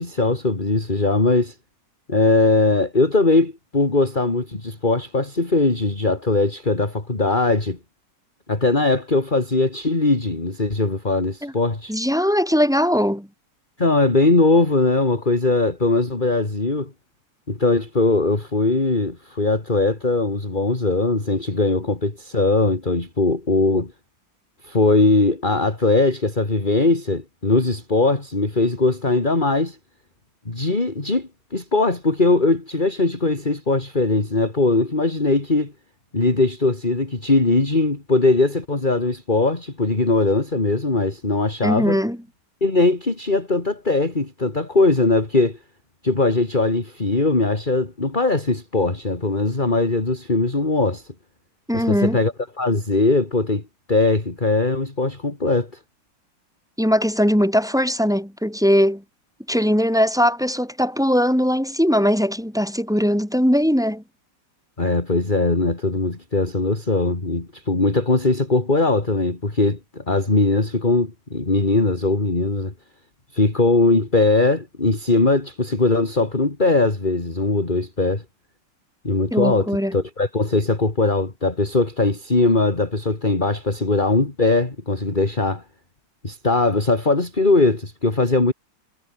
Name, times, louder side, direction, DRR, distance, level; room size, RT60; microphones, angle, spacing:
voice 1, 0.0-1.5 2.1-7.8 8.5-11.9 13.8-16.9 17.5-23.9 24.6-29.8 30.4-35.7 36.1-42.0 42.6-45.6 46.0-51.0 51.7-53.6 53.9-55.7 64.8-72.7 73.3-78.2 79.0-85.6 86.2-88.5, left 2 dB, 25° left, 3.2 m, -20 dB
voice 2, 11.9-13.3 41.6-42.2 51.7-52.2 56.8-59.0 59.5-64.0 79.3-79.9, equal, ahead, 6.2 m, -20 dB
omnidirectional pair, 2.0 m